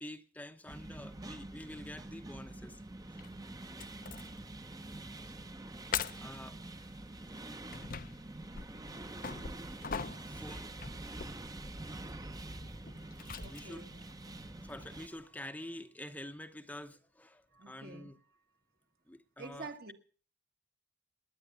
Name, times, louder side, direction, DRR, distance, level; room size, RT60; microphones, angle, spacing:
voice 1, 0.0-2.8 4.8-4.9 5.2-5.4 6.2-6.6 10.2-10.7 13.2-13.9 14.5-18.2 19.1-19.9, left 1 dB, 10° left, 0.8 m, -47 dB
sound 1, 0.7-15.1, right 2 dB, 20° right, 0.8 m, -46 dB
sound 2, 3.2-3.3 3.8-4.4 4.8-5.0 5.4-5.5 5.9-6.4 7.2-15.3, left 6 dB, 50° left, 0.7 m, -43 dB
voice 2, 13.2-14.0 17.5-18.2 19.4-19.9, right 3 dB, 55° right, 1.7 m, -48 dB
20.5 x 9.8 x 6.7 m
head